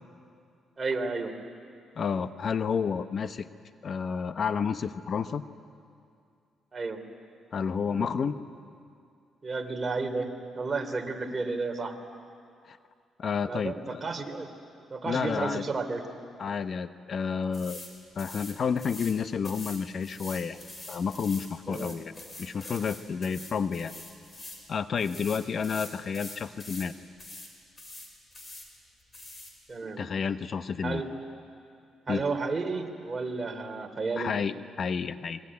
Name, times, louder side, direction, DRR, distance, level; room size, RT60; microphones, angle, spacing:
voice 1, 0.8-1.3 6.7-7.0 9.4-10.3 10.6-11.9 13.4-14.5 14.9-16.0 21.7-22.0 29.7-30.0 30.8-31.1 32.1-34.3, right 3 dB, 30° right, 5 dB, 3.0 m, -32 dB
voice 2, 2.0-3.5 3.8-5.4 7.5-8.4 12.6-12.8 13.2-14.0 15.0-15.6 16.4-17.8 18.2-20.6 20.9-22.1 22.4-23.9 24.7-26.9 30.0-31.0 32.1-32.2 34.2-35.4, left 6 dB, 50° left, 11 dB, 0.9 m, -30 dB
sound 1, 17.5-17.9 18.2-19.2 19.4-24.6 25.0-26.9 27.2-27.5 27.8-28.7 29.1-29.5, left 2 dB, 25° left, 5.5 m, -44 dB
26.5 x 22.5 x 9.7 m, 2.4 s
cardioid pair, 90°, 0 cm